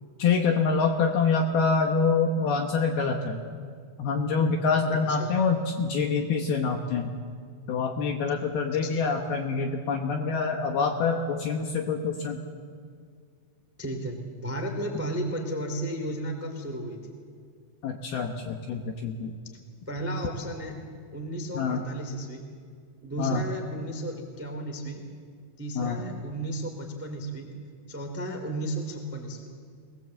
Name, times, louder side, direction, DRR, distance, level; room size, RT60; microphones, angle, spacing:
voice 1, 0.2-3.4 4.0-7.1 7.7-12.4 17.8-19.4 21.5-21.8 23.2-23.4 25.8-26.0, left 5 dB, 70° left, 3 dB, 2.4 m, -26 dB
voice 2, 13.8-17.0 19.8-20.7 21.1-22.4 23.0-25.0 25.6-27.5 27.9-29.5, right 1 dB, 10° right, 3 dB, 0.7 m, -33 dB
24.5 x 19.0 x 7.6 m, 2.1 s
omnidirectional pair, 5.7 m